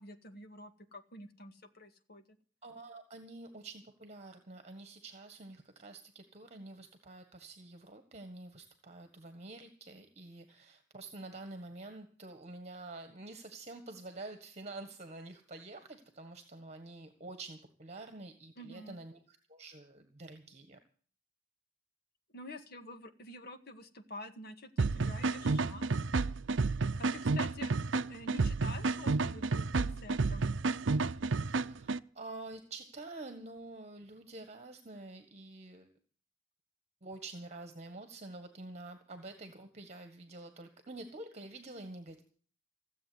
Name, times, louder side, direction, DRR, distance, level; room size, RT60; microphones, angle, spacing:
voice 1, 0.0-2.2 18.6-19.0 22.3-26.0 27.0-30.5, left 1 dB, 55° left, 7 dB, 1.9 m, -48 dB
voice 2, 2.6-20.8 31.5-35.9 37.0-42.2, right 2 dB, 35° right, 7 dB, 1.6 m, -48 dB
sound 1, 24.8-32.0, right 3 dB, 75° right, 0.6 m, -31 dB
16.5 x 7.7 x 9.5 m, 0.44 s
head